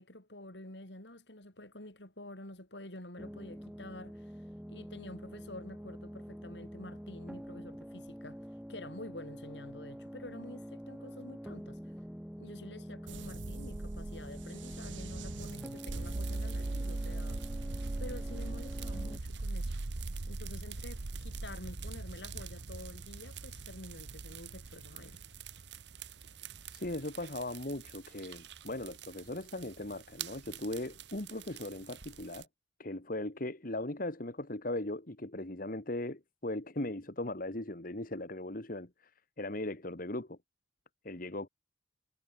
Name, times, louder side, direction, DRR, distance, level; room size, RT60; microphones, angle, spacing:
voice 1, 0.0-11.9 12.4-19.7 20.0-25.2, left 1 dB, 70° left, 6.6 m, -49 dB
sound 1, 3.2-19.2, equal, 5° right, 1.8 m, -46 dB
sound 2, 13.1-27.3, right 2 dB, 90° right, 1.1 m, -40 dB
Content warning, 15.4-32.5, right 11 dB, 70° right, 1.8 m, -50 dB
voice 2, 26.7-32.5 32.8-39.1 39.4-40.4 41.0-41.5, left 1 dB, 50° left, 2.0 m, -38 dB
head